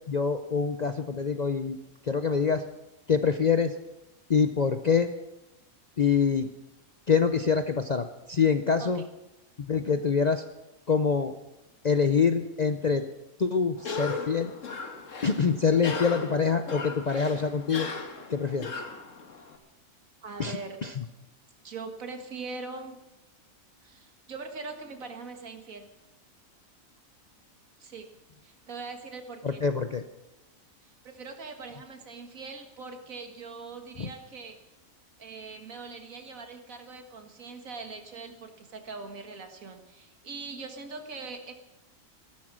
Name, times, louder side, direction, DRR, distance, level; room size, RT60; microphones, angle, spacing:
voice 1, 0.1-1.8 2.0-2.6 3.1-3.7 4.3-5.1 6.0-6.5 7.1-9.0 9.7-10.4 10.9-11.4 11.8-13.0 13.4-14.5 15.2-17.9 18.3-18.8 20.4-21.0 29.4-30.0 34.0-34.1, left 6 dB, 45° left, 8 dB, 0.6 m, -25 dB
Cough, 13.8-19.6, left 4 dB, 65° left, 1.9 m, -37 dB
voice 2, 20.2-20.8 21.6-23.0 23.8-25.9 27.8-28.1 28.4-29.6 30.8-34.6 35.2-41.5, right 4 dB, 75° right, 5 dB, 2.2 m, -41 dB
15.0 x 13.0 x 6.2 m, 0.97 s
omnidirectional pair, 1.5 m